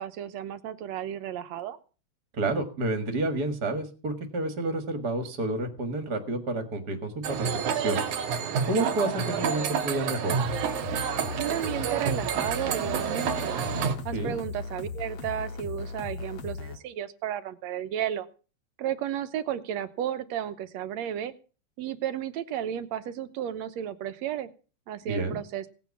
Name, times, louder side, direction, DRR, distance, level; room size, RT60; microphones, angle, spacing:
voice 1, 0.0-1.8 11.4-13.6 14.1-18.3 18.8-21.3 21.8-24.5 24.9-25.7, right 10 dB, 70° right, 13 dB, 2.1 m, -33 dB
voice 2, 2.3-8.0 8.7-10.4 14.1-14.3 25.1-25.4, right 2 dB, 35° right, 7 dB, 2.0 m, -29 dB
sound 1, 7.2-14.0, right 7 dB, 90° right, 3.0 m, -29 dB
sound 2, 10.4-16.8, left 4 dB, 55° left, 2.4 m, -38 dB
18.0 x 9.4 x 7.2 m, 0.36 s
omnidirectional pair, 3.4 m